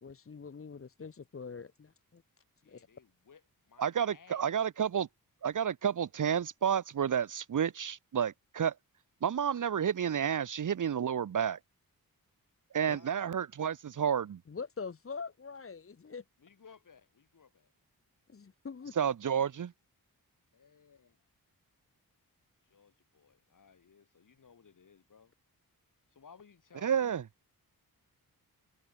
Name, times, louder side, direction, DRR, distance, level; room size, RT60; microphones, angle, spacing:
voice 1, 0.0-2.2 2.6-2.9 12.9-13.0 14.5-16.2 18.3-18.9, left 5 dB, 35° left, 1.5 m, -44 dB
voice 2, 2.6-5.0 12.8-13.3 16.4-17.7 20.5-21.2 22.6-25.3 26.1-27.2, left 6 dB, 55° left, 6.8 m, -60 dB
voice 3, 3.8-5.1 5.4-8.7 9.2-11.6 12.7-14.4 19.0-19.7 26.8-27.2, right 8 dB, 55° right, 0.9 m, -30 dB
wide cardioid pair, 165°, 37 cm